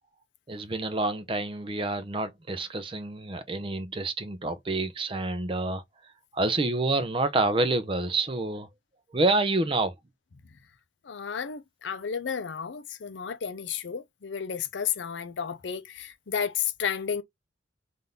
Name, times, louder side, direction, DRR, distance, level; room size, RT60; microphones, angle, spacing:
voice 1, 0.5-5.8 6.3-8.7 9.1-9.9, right 2 dB, 30° right, 0.6 m, -28 dB
voice 2, 11.0-17.2, left 7 dB, 85° left, 0.6 m, -32 dB
3.8 x 2.6 x 3.4 m
head